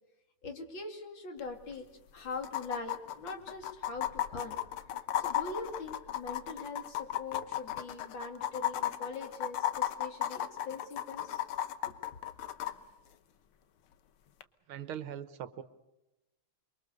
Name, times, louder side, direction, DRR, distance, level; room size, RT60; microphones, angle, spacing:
voice 1, 0.4-1.9 2.1-4.6 5.2-11.4, left 3 dB, 65° left, 5 dB, 3.3 m, -42 dB
sound 1, 1.4-1.5 1.7-1.8 2.4-12.7 14.4-14.5, left 12 dB, 85° left, 2.0 m, -34 dB
voice 2, 14.7-15.6, right 9 dB, 80° right, 13 dB, 2.0 m, -40 dB
28.5 x 23.0 x 6.7 m, 0.95 s
omnidirectional pair, 2.3 m